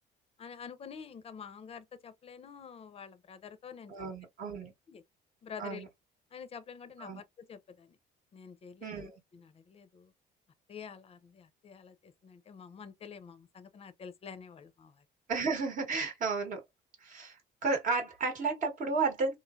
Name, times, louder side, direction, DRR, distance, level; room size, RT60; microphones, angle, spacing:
voice 1, 0.4-3.9 4.9-5.0 5.4-5.8 6.3-8.0 8.3-10.1 10.7-15.0, left 6 dB, 35° left, 0.5 m, -48 dB
voice 2, 3.9-4.7 5.6-5.9 7.0-7.2 8.8-9.1 15.3-16.6 17.0-19.4, right 4 dB, 50° right, 0.9 m, -33 dB
3.1 x 2.0 x 2.3 m
cardioid pair, 110°, 17 cm